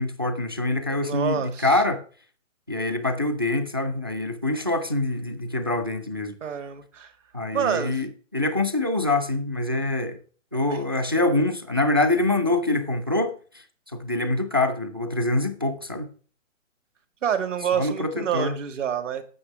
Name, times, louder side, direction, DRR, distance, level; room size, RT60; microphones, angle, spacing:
voice 1, 0.0-2.0 2.7-6.4 7.3-10.2 10.5-13.6 13.9-16.1 17.7-18.5, left 2 dB, 20° right, 0.4 m, -25 dB
voice 2, 1.0-1.7 6.4-7.1 7.5-8.0 17.2-19.2, right 8 dB, 65° right, 1.8 m, -27 dB
8.5 x 6.4 x 5.9 m
hypercardioid pair, 150°, 40 cm